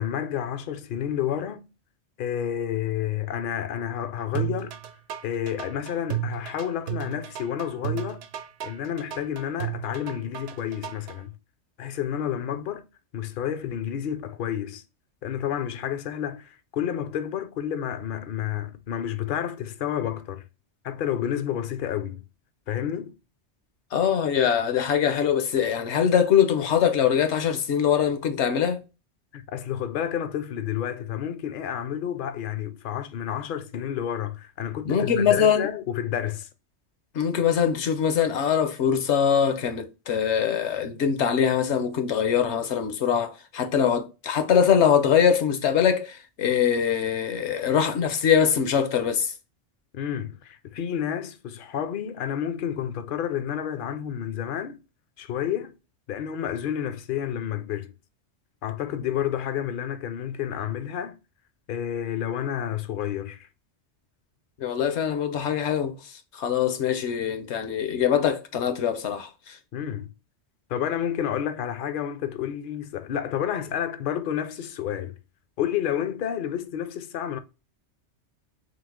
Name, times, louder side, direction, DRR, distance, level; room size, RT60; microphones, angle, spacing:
voice 1, 0.0-1.7 2.2-4.8 5.2-8.2 8.6-11.3 11.8-12.9 13.1-14.8 15.2-20.4 20.8-22.2 22.7-23.2 29.3-36.5 49.9-54.8 55.2-55.7 56.1-57.9 58.6-61.2 61.7-63.5 69.7-70.1 70.7-75.2 75.6-77.4, left 9 dB, 55° left, 0.7 m, -30 dB
sound 1, 4.3-11.2, right 12 dB, 80° right, 0.9 m, -33 dB
voice 2, 23.9-28.8 34.8-35.7 37.1-49.3 64.6-65.9 66.3-69.5, left 8 dB, 75° left, 1.0 m, -23 dB
3.9 x 2.8 x 3.6 m
omnidirectional pair, 1.2 m